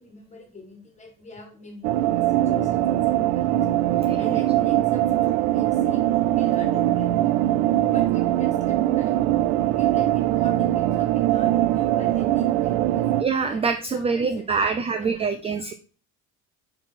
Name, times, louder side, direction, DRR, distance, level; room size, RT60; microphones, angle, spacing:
voice 1, 0.0-3.7 4.2-7.4 7.9-9.3 9.7-15.6, left 3 dB, 20° left, 3 dB, 1.7 m, -44 dB
sound 1, 1.8-13.2, right 14 dB, 85° right, 0.6 m, -21 dB
voice 2, 4.1-4.4 13.2-15.7, right 5 dB, 20° right, 8 dB, 0.3 m, -25 dB
4.8 x 4.7 x 5.6 m, 0.37 s
cardioid pair, 140°, 36 cm